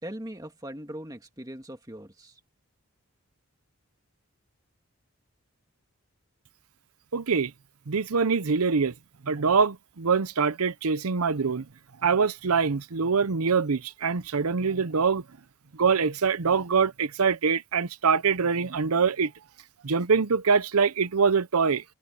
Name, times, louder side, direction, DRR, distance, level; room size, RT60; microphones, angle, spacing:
voice 1, 0.0-2.4, right 1 dB, 15° right, 1.8 m, -40 dB
voice 2, 7.1-7.5 7.9-8.9 9.2-11.7 12.0-15.2 15.7-19.3 19.8-21.8, right 5 dB, 85° right, 0.8 m, -24 dB
head